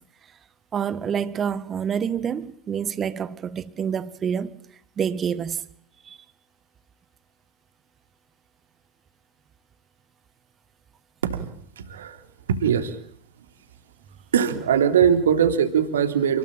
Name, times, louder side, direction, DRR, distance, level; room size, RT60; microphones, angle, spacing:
voice 1, 0.7-4.6 5.0-5.6 6.0-6.2, right 7 dB, 30° right, 1.8 m, -27 dB
voice 2, 11.8-12.2 12.5-13.0 14.3-16.4, right 8 dB, 70° right, 3.4 m, -21 dB
29.5 x 21.0 x 9.0 m
figure-of-eight pair, 85°, 0 cm